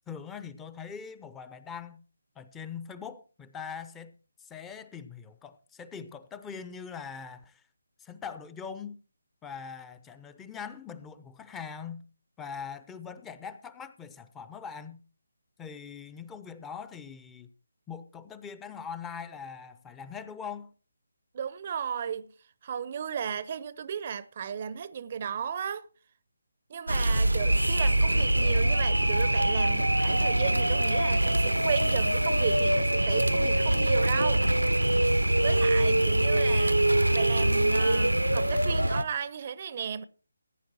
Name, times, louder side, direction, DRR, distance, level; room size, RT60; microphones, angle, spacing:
voice 1, 0.1-2.0 2.4-7.6 8.0-9.0 9.4-12.0 12.4-15.0 15.6-17.5 17.9-20.7, left 6 dB, 10° left, 0.6 m, -42 dB
voice 2, 21.3-22.3 22.6-25.9 26.7-34.5 34.7-34.9 35.4-36.8 37.1-40.0, right 7 dB, 35° right, 0.6 m, -34 dB
Natural Disaster, 26.9-39.0, right 1 dB, 90° right, 0.8 m, -24 dB
15.5 x 9.2 x 4.4 m
figure-of-eight pair, 150°, 0 cm